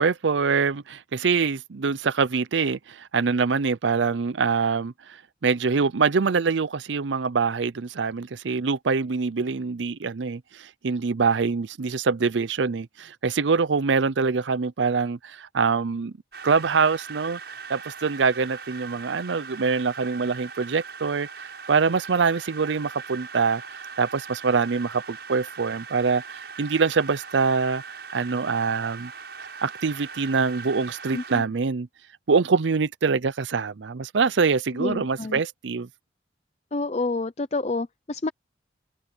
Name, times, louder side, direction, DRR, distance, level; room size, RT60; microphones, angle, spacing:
voice 1, 0.0-4.9 5.4-16.1 16.4-17.4 17.7-27.8 28.1-29.1 29.6-31.9 32.3-35.9, right 5 dB, 90° right, 0.6 m, -24 dB
sound 1, 16.3-31.4, right 5 dB, 65° right, 6.8 m, -40 dB
voice 2, 31.1-31.4 34.8-35.4 36.7-38.3, left 3 dB, 35° left, 0.6 m, -28 dB
head